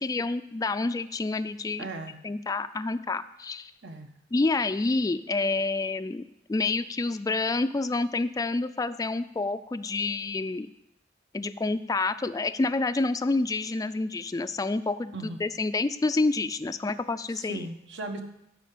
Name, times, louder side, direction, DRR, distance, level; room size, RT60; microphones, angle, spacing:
voice 1, 0.0-1.9 2.2-3.7 4.3-10.7 11.3-17.7, left 3 dB, 20° left, 10 dB, 0.3 m, -28 dB
voice 2, 1.8-2.2 3.8-4.1 15.1-15.4 17.3-18.2, right 2 dB, 75° right, 5 dB, 1.3 m, -37 dB
12.5 x 5.0 x 8.4 m, 0.83 s
head